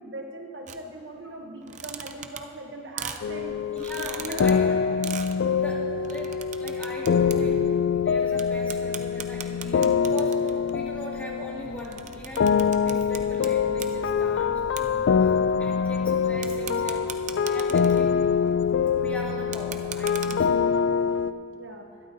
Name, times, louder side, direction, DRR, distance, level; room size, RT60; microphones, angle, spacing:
voice 1, 0.0-3.5 3.9-4.5 21.5-21.9, right 2 dB, 60° right, 3 dB, 0.9 m, -40 dB
sound 1, 0.7-0.8 1.6-2.6 3.0-3.2 3.8-4.5 5.0-5.3 6.0-7.4 7.7-7.8 8.4-8.5 8.7-10.7 11.4-13.5 13.7-14.0 14.8-14.9 16.4-18.1 19.4-20.3, right 9 dB, 35° right, 0.5 m, -37 dB
sound 2, 3.2-12.1 12.4-21.3, left 6 dB, 65° left, 0.3 m, -24 dB
voice 2, 3.7-6.3 6.6-15.3 15.6-17.1 17.4-18.3 18.9-20.6, equal, 10° left, -5 dB, 2.2 m, -40 dB
sound 3, 11.9-19.4, equal, 30° left, 2.1 m, -48 dB
21.0 x 12.0 x 2.7 m, 2.6 s
head